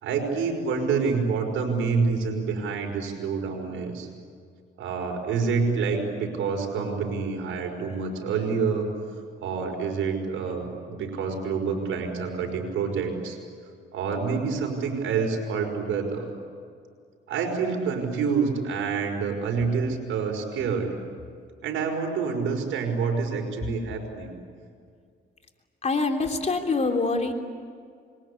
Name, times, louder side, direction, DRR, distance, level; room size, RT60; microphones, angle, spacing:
voice 1, 0.0-4.1 4.8-8.9 9.4-13.4 13.9-16.3 17.3-21.0 21.6-24.3, right 5 dB, 85° right, 3 dB, 5.6 m, -27 dB
voice 2, 25.8-27.3, left 3 dB, 35° left, 3 dB, 3.5 m, -25 dB
27.5 x 23.0 x 8.6 m, 2.2 s
cardioid pair, 90°, 20 cm